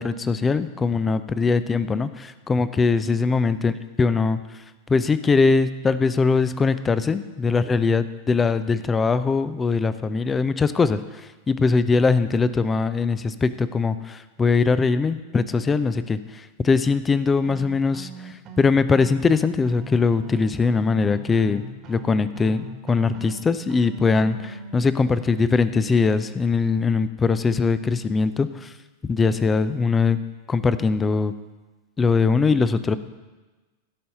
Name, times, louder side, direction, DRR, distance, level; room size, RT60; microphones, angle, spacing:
voice 1, 0.0-4.4 4.9-11.0 11.5-18.1 18.6-21.6 21.9-28.7 29.1-30.2 30.5-31.3 32.0-33.0, left 4 dB, 15° left, 14 dB, 0.5 m, -21 dB
sound 1, 17.4-24.8, right 3 dB, 35° right, 1.5 m, -41 dB
16.0 x 5.5 x 6.5 m, 1.2 s
figure-of-eight pair, 90°, 0 cm